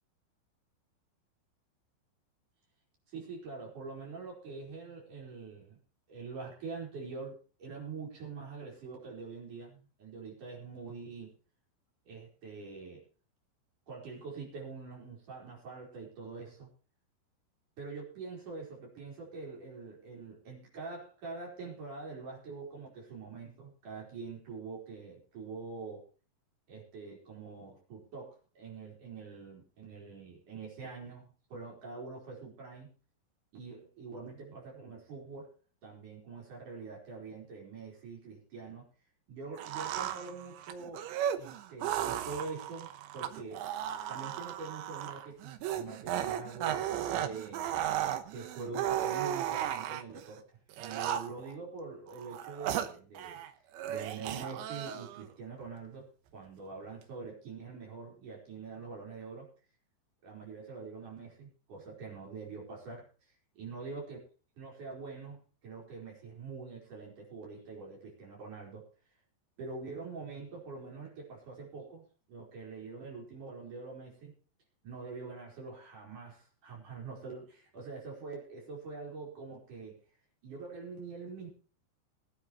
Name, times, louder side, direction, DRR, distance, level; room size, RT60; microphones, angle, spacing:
voice 1, 3.1-5.8 6.1-11.4 12.1-13.0 13.9-16.7 17.8-26.0 26.7-32.9 33.5-35.5 35.8-38.9 39.3-41.1 41.3-43.7 44.1-47.7 48.3-53.4 53.9-56.1 56.3-59.5 60.2-63.1 63.5-64.2 64.6-68.9 69.6-74.3 74.8-80.0 80.4-81.5, right 4 dB, 45° right, -2 dB, 5.9 m, -44 dB
sound 1, 39.6-50.2 50.7-51.5 52.1-53.5 53.7-55.2, right 11 dB, 85° right, 3.3 m, -35 dB
22.0 x 9.5 x 3.1 m, 0.37 s
omnidirectional pair, 5.2 m